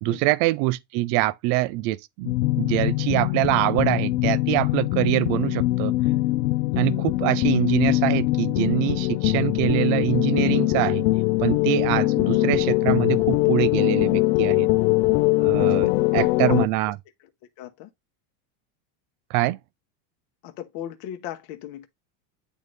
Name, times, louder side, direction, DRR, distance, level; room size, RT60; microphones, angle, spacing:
voice 1, 0.0-5.9 6.8-11.0 11.4-14.7 15.4-17.0 19.3-19.6, right 18 dB, 40° right, 0.4 m, -24 dB
sound 1, 2.2-16.7, left 19 dB, 85° left, 0.6 m, -22 dB
voice 2, 15.6-16.6 17.6-17.9 20.4-21.9, left 9 dB, 45° left, 0.9 m, -36 dB
9.2 x 4.0 x 3.2 m
supercardioid pair, 140°, 48 cm